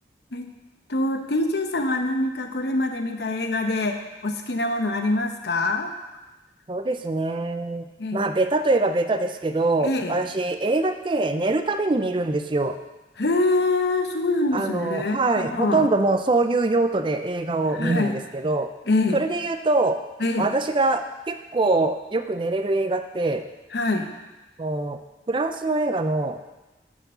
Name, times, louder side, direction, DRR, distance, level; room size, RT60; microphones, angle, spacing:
voice 1, 0.9-5.9 8.0-8.3 9.8-10.2 13.2-15.9 17.8-18.2 18.9-19.2 20.2-20.5 23.7-24.1, left 2 dB, 70° left, 5 dB, 0.9 m, -25 dB
voice 2, 6.7-7.9 8.1-12.8 14.5-18.7 19.1-20.0 20.4-23.4 24.6-25.0 25.3-26.4, right 2 dB, 25° right, 8 dB, 0.4 m, -23 dB
9.8 x 4.7 x 6.7 m, 1.1 s
head